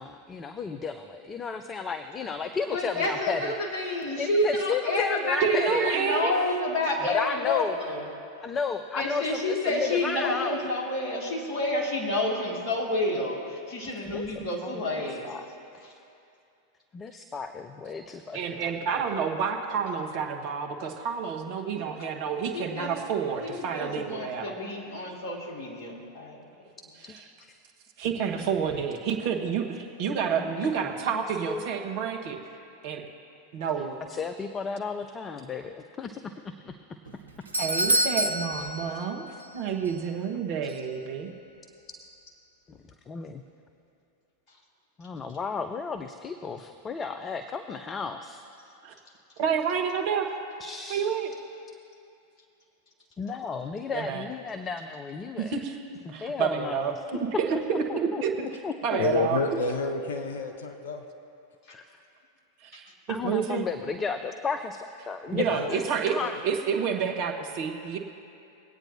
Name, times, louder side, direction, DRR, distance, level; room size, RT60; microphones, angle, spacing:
voice 1, 0.0-3.5 4.2-5.9 7.0-7.8 8.4-10.6 14.0-15.5 15.7-15.8 16.9-19.0 27.0-27.2 28.3-28.4 30.4-30.5 31.1-31.7 34.1-36.7 37.9-38.1 43.1-43.4 45.0-48.4 50.6-51.1 53.2-55.6 56.1-56.9 57.9-58.2 58.6-58.7 61.7-61.8 63.1-64.8 65.1-66.4, left 5 dB, 20° left, 8 dB, 0.5 m, -33 dB
voice 2, 2.7-8.0 9.0-15.3 15.8-15.9 18.4-18.5 19.1-19.2 21.7-21.9 22.5-22.9 23.4-26.4, left 2 dB, 35° left, -3 dB, 2.4 m, -29 dB
voice 3, 5.4-6.3 18.3-24.5 28.0-32.4 32.8-33.0 33.5-33.9 37.5-39.3 39.5-41.3 48.8-48.9 49.4-50.4 50.9-51.3 53.9-54.2 55.4-55.8 56.1-58.5 58.8-59.4 62.6-62.9 63.2-63.7 65.3-66.1 66.4-68.0, right 7 dB, 45° right, 2 dB, 1.2 m, -29 dB
Doorbell, 37.1-39.6 39.8-39.9 40.7-40.8, equal, 75° right, 0.7 m, -28 dB
voice 4, 59.0-61.0 65.3-66.3, left 3 dB, 65° left, 5 dB, 0.9 m, -30 dB
21.5 x 8.9 x 2.8 m, 2.6 s
figure-of-eight pair, 90°, 0 cm